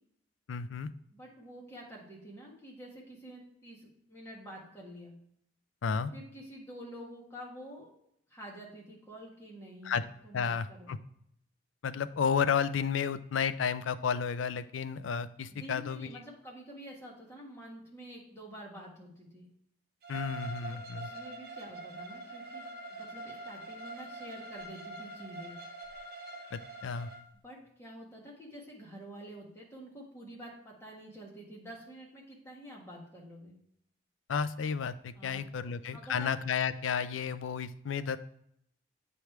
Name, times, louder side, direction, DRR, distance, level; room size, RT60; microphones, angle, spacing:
voice 1, 0.5-0.9 5.8-6.1 9.8-10.0 10.3-11.0 11.8-16.2 20.1-21.1 26.5-27.1 34.3-38.2, left 6 dB, 90° left, 14 dB, 0.4 m, -32 dB
voice 2, 1.1-5.1 6.1-7.9 8.3-10.0 10.2-10.9 15.5-19.5 20.7-25.5 27.4-33.5 35.1-36.3, equal, 15° left, -3 dB, 1.6 m, -48 dB
Bowed string instrument, 20.0-27.2, right 2 dB, 55° right, 0.9 m, -44 dB
8.3 x 3.4 x 4.5 m, 0.71 s
head